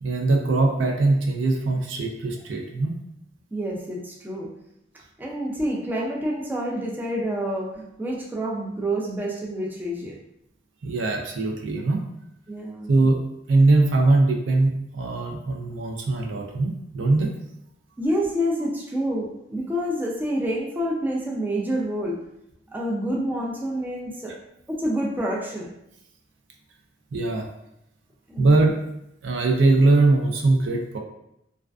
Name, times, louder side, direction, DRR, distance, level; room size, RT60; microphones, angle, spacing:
voice 1, 0.0-2.9 10.8-12.0 12.9-13.2 13.5-17.3 27.1-27.5 28.4-28.7 29.2-31.0, right 2 dB, 75° right, 1 dB, 0.4 m, -21 dB
voice 2, 3.5-4.5 5.2-10.1 12.5-13.0 18.0-22.2 22.7-24.3 24.7-25.7 28.3-28.6, equal, 10° right, -3 dB, 0.3 m, -28 dB
2.3 x 2.3 x 2.3 m, 0.81 s
head